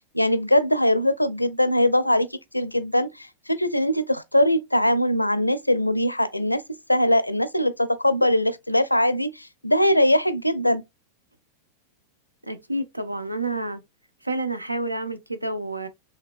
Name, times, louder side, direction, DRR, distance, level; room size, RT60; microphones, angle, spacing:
voice 1, 0.1-6.6 6.9-10.8, left 1 dB, 85° left, 0.4 m, -21 dB
voice 2, 12.4-13.8 14.2-15.9, right 2 dB, 85° right, 0.6 m, -29 dB
5.0 x 3.2 x 2.3 m
figure-of-eight pair, 90°, 0 cm